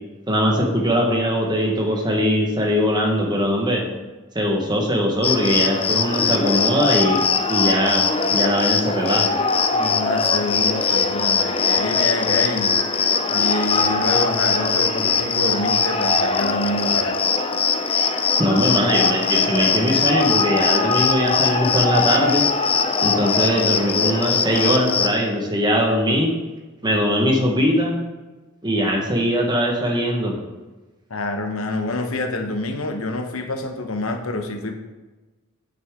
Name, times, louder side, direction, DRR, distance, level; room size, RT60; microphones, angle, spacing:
voice 1, 0.3-3.8 4.3-9.3 18.4-22.4 23.0-26.3 26.8-28.0 28.6-30.3, equal, 20° right, 0 dB, 1.4 m, -21 dB
Cricket, 5.2-25.1, left 5 dB, 25° left, 0.6 m, -21 dB
voice 2, 9.7-12.7 13.3-17.2 31.1-34.7, left 2 dB, 65° left, 5 dB, 1.0 m, -27 dB
9.4 x 6.3 x 3.7 m, 1.2 s
head